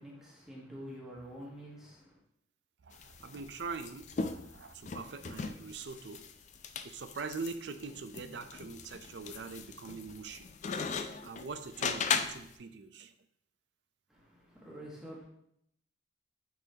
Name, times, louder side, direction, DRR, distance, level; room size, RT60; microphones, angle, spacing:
voice 1, 0.0-2.2 14.1-15.3, equal, 5° right, -6 dB, 1.3 m, -47 dB
voice 2, 2.8-6.2 6.8-10.5 11.2-13.1, right 4 dB, 60° right, 9 dB, 0.5 m, -43 dB
sound 1, 2.9-12.5, left 5 dB, 40° left, 0.4 m, -38 dB
9.1 x 4.0 x 2.8 m, 0.73 s
head